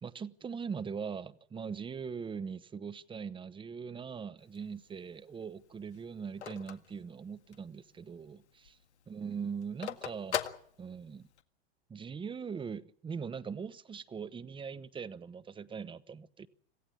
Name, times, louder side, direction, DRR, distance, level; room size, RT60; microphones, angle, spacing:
voice 1, 0.0-8.8 9.1-10.4 10.8-11.3 11.9-16.5, right 6 dB, 15° right, 1.0 m, -41 dB
Telephone, 4.4-7.8 8.2-8.3 8.5-11.4, left 8 dB, 85° left, 1.9 m, -40 dB
26.5 x 15.5 x 8.5 m
hypercardioid pair, 115°, 33 cm